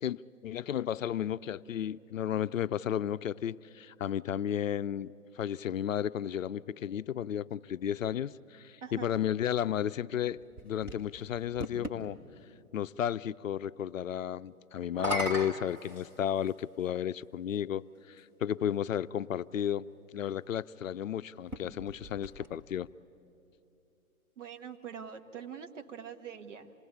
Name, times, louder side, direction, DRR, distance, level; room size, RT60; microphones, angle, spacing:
voice 1, 0.0-5.1 5.4-10.4 10.6-12.2 12.7-19.9 20.1-22.9, left 10 dB, 65° left, 15 dB, 0.5 m, -33 dB
voice 2, 8.8-9.1 24.4-26.7, right 7 dB, 60° right, 7 dB, 1.5 m, -44 dB
sound 1, 10.4-12.0 14.8-16.6 17.5-17.6 21.4-22.9, equal, 5° right, 0.6 m, -39 dB
27.0 x 19.5 x 8.3 m, 2.8 s
figure-of-eight pair, 130°, 43 cm